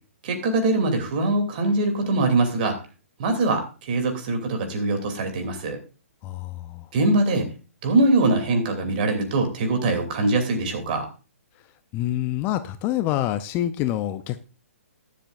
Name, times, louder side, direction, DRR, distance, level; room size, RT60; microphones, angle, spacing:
voice 1, 0.2-2.8 3.2-5.8 6.9-7.5 7.8-11.1, right 2 dB, 40° right, 5 dB, 2.8 m, -22 dB
voice 2, 6.2-6.9 11.9-14.4, left 13 dB, 25° left, 12 dB, 0.6 m, -26 dB
21.5 x 7.5 x 2.5 m, 0.34 s
figure-of-eight pair, 120°, 8 cm